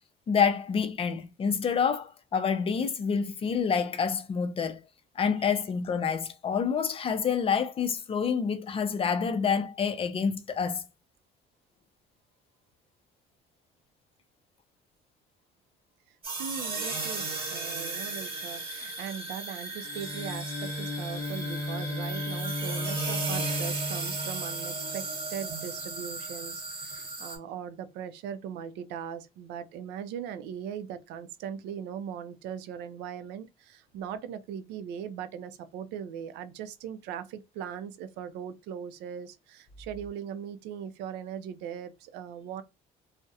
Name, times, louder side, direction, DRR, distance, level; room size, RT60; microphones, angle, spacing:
voice 1, 0.3-4.8 5.2-10.9, left 6 dB, 35° left, 0.4 m, -28 dB
voice 2, 16.1-42.6, right 8 dB, 90° right, 0.4 m, -39 dB
sound 1, 16.2-27.4, right 3 dB, 35° right, 1.1 m, -35 dB
Bowed string instrument, 19.8-25.3, left 1 dB, 10° left, 0.8 m, -35 dB
2.3 x 2.1 x 2.6 m
cardioid pair, 110°, 17 cm